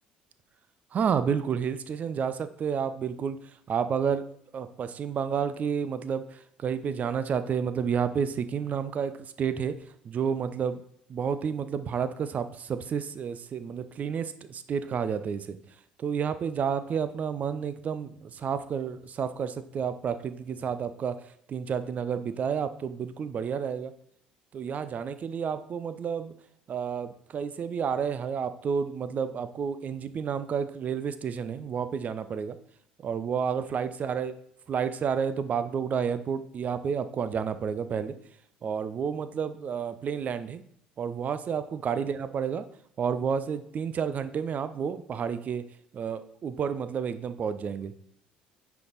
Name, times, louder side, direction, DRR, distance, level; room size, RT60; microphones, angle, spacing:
voice 1, 0.9-3.4 3.7-4.2 4.5-9.8 10.0-10.8 11.1-15.6 16.0-23.9 24.5-26.3 26.7-32.6 33.0-34.3 34.7-38.1 38.6-40.6 41.0-42.6 43.0-45.6 45.9-47.9, right 7 dB, 40° right, 12 dB, 0.7 m, -30 dB
9.4 x 4.9 x 4.0 m, 0.67 s
figure-of-eight pair, 55°, 4 cm